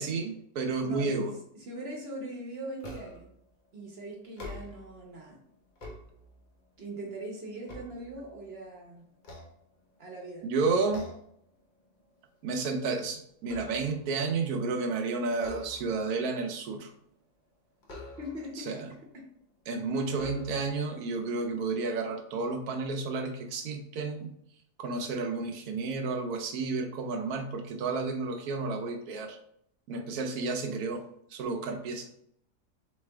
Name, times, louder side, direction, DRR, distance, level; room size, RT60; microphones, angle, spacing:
voice 1, 0.0-1.3 10.4-11.1 12.4-16.9 18.6-18.9 19.7-24.4 24.8-29.4 29.9-31.0 31.3-32.1, right 4 dB, 70° right, 5 dB, 1.1 m, -31 dB
voice 2, 0.8-3.3 3.7-5.4 6.8-9.1 10.0-10.4 18.2-18.8 19.1-19.2, right 1 dB, 45° right, 0 dB, 1.0 m, -41 dB
sound 1, 2.8-3.4 4.2-5.0 5.5-6.6 7.1-8.6 9.2-10.2 10.9-11.4 11.8-12.0 12.4-14.1 15.3-16.2 17.8-18.6 19.4-19.5 20.1-20.9, left 2 dB, 45° left, 0.6 m, -46 dB
4.0 x 3.3 x 3.4 m, 0.70 s
omnidirectional pair, 1.7 m